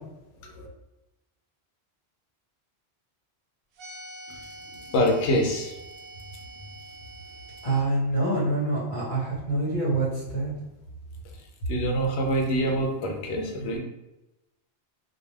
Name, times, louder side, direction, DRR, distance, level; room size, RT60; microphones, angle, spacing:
sound 1, 3.8-7.8, right 2 dB, 65° right, 0.7 m, -45 dB
voice 1, 4.9-5.7 11.7-13.8, equal, 80° left, 1 dB, 0.8 m, -25 dB
voice 2, 7.6-10.5, right 2 dB, 50° left, -5 dB, 1.2 m, -26 dB
2.3 x 2.2 x 3.1 m, 0.95 s
omnidirectional pair, 1.1 m